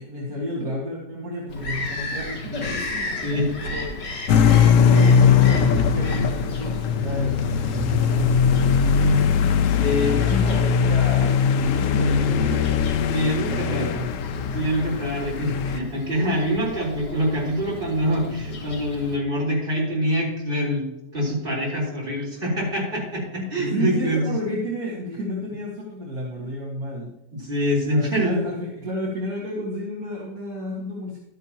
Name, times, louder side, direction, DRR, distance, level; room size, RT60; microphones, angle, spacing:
voice 1, 0.0-2.8 3.3-3.8 4.9-9.1 9.9-13.0 13.5-14.1 23.4-27.1 27.9-31.2, equal, 60° right, -4 dB, 2.2 m, -31 dB
Bird vocalization bird call bird song, 1.5-19.2, left 2 dB, 80° left, 2.6 m, -35 dB
voice 2, 3.2-3.5 9.8-10.2 13.1-13.9 14.5-20.8 21.1-24.4 27.3-28.4, equal, 30° right, -4 dB, 4.2 m, -25 dB
sound 1, 4.3-15.8, left 6 dB, 65° left, 0.8 m, -20 dB
12.0 x 10.0 x 2.9 m, 0.92 s
omnidirectional pair, 1.8 m